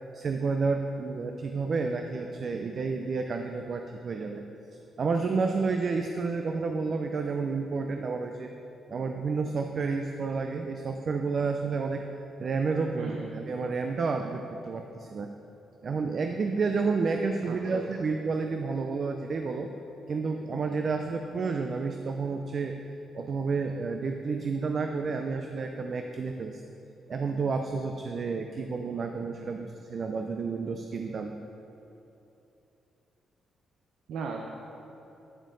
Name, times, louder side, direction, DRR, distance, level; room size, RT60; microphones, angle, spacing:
voice 1, 0.1-4.4 4.7-8.5 8.9-12.0 12.4-15.3 15.8-19.7 20.1-22.8 23.1-26.6 27.1-31.4, right 4 dB, 35° right, 5 dB, 0.3 m, -30 dB
voice 2, 13.0-13.3 17.5-17.9 34.1-34.4, right 5 dB, 80° right, 1 dB, 0.6 m, -35 dB
10.0 x 6.4 x 3.8 m, 2.9 s
wide cardioid pair, 175°, 0 cm